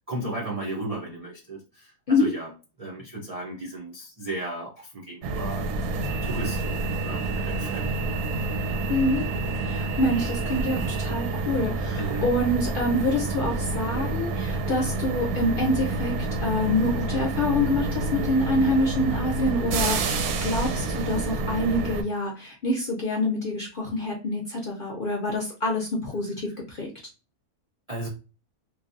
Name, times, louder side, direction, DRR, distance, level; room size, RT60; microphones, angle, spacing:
voice 1, 0.1-2.5 2.8-8.1 11.9-12.3 27.9-28.1, right 2 dB, 65° right, 0.3 m, -35 dB
sound 1, 5.2-22.0, right 2 dB, 85° right, 1.1 m, -28 dB
voice 2, 8.9-9.3 9.6-16.1 16.4-26.9, left 1 dB, 55° left, 0.6 m, -26 dB
3.1 x 2.2 x 2.5 m
omnidirectional pair, 1.6 m